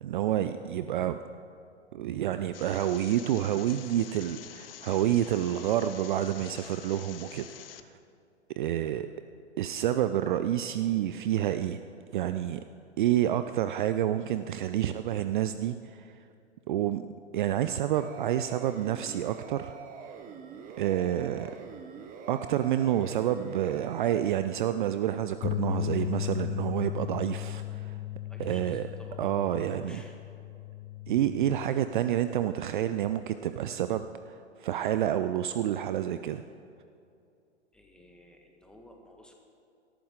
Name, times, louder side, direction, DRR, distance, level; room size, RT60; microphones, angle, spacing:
voice 1, 0.0-1.2 1.9-7.5 7.8-7.9 8.6-9.1 9.6-11.8 12.1-12.6 13.0-16.1 16.7-17.0 17.3-19.8 20.8-21.5 22.3-28.0 28.4-28.9 29.2-30.0 31.1-36.4, right 11 dB, 45° right, 11 dB, 0.5 m, -29 dB
sound 1, 2.5-7.8, left 11 dB, 55° left, 0.8 m, -47 dB
sound 2, 18.0-24.3, right 6 dB, 25° right, 1.1 m, -45 dB
sound 3, 25.4-31.7, left 12 dB, 20° left, 0.4 m, -35 dB
voice 2, 28.3-29.2 29.8-30.2 37.7-39.3, left 1 dB, ahead, 2 dB, 1.6 m, -54 dB
18.0 x 13.5 x 3.8 m, 2.6 s
figure-of-eight pair, 105°, 35 cm